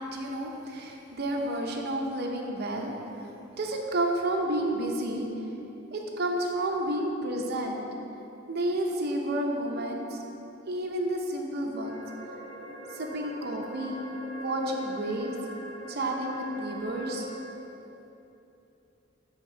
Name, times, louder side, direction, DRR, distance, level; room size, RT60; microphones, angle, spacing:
voice 1, 0.0-2.9 3.2-3.3 3.6-5.3 5.9-7.8 8.5-10.2 10.6-12.0 12.9-14.0 14.3-15.3 15.9-17.3, right 1 dB, 55° right, 1 dB, 0.7 m, -30 dB
sound 1, 11.8-17.4, equal, 80° left, 1.4 m, -43 dB
7.4 x 3.6 x 5.0 m, 3.0 s
head